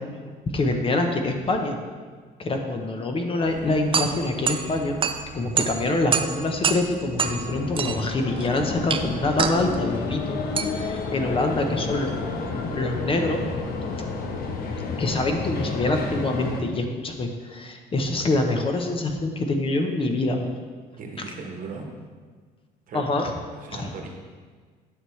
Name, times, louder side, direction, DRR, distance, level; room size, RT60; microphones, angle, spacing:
voice 1, 0.5-1.8 2.4-5.0 5.3-10.4 10.7-13.4 15.0-20.5 22.9-23.3 23.7-23.9, left 2 dB, 30° left, 4 dB, 0.8 m, -25 dB
sound 1, 3.4-12.6, right 6 dB, 30° right, 0.5 m, -29 dB
sound 2, 7.3-16.6, left 4 dB, 65° left, 1.0 m, -30 dB
voice 2, 21.0-21.9 22.9-23.0 23.5-24.1, right 4 dB, 55° right, 1 dB, 1.3 m, -37 dB
9.8 x 6.2 x 3.2 m, 1.5 s
cardioid pair, 110°, 17 cm